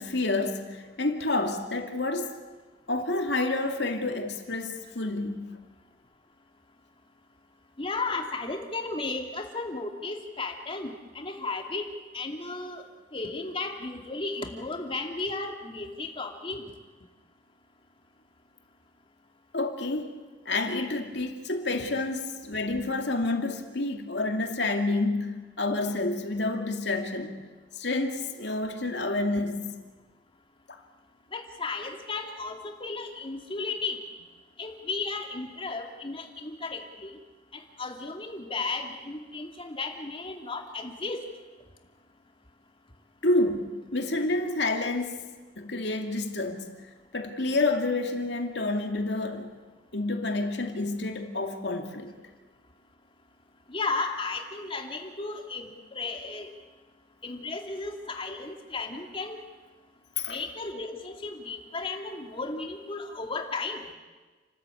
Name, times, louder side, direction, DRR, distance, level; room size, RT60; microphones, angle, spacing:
voice 1, 0.0-2.4 2.9-5.6 19.5-20.1 20.5-27.4 27.8-29.7 30.7-30.8 43.2-45.2 45.6-46.7 47.1-49.5 49.9-52.1 60.2-60.4, left 2 dB, 65° left, 2.4 m, -29 dB
voice 2, 7.8-11.9 12.1-12.8 13.1-16.7 31.3-34.0 34.6-37.1 37.8-41.2 53.7-56.5 57.2-59.4 60.3-63.8, left 3 dB, 30° left, 2.4 m, -34 dB
29.0 x 13.5 x 8.6 m
head